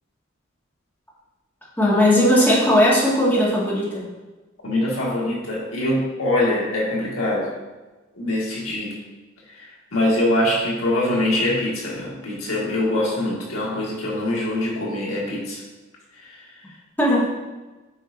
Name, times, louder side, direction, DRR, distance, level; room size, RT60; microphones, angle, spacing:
voice 1, 1.8-4.1 17.0-17.3, left 1 dB, 10° left, -7 dB, 1.8 m, -17 dB
voice 2, 4.6-7.5 8.1-9.0 9.6-15.6, left 1 dB, 90° left, -4 dB, 1.7 m, -23 dB
8.0 x 5.3 x 2.6 m, 1.2 s
head